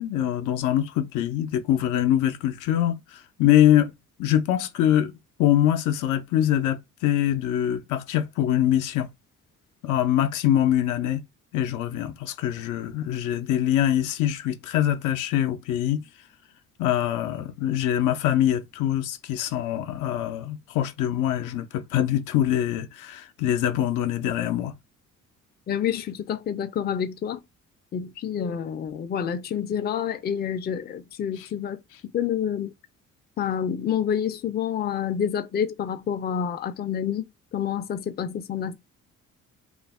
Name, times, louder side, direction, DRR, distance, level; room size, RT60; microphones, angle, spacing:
voice 1, 0.0-3.9 4.2-5.1 5.4-9.1 9.8-11.2 11.5-16.0 16.8-24.8, left 11 dB, 85° left, 0.5 m, -24 dB
voice 2, 25.7-27.4 27.9-31.8 32.1-32.7 33.4-37.3 37.5-38.8, left 8 dB, 35° left, 0.4 m, -28 dB
2.4 x 2.0 x 3.4 m
cardioid pair, 90°, 30 cm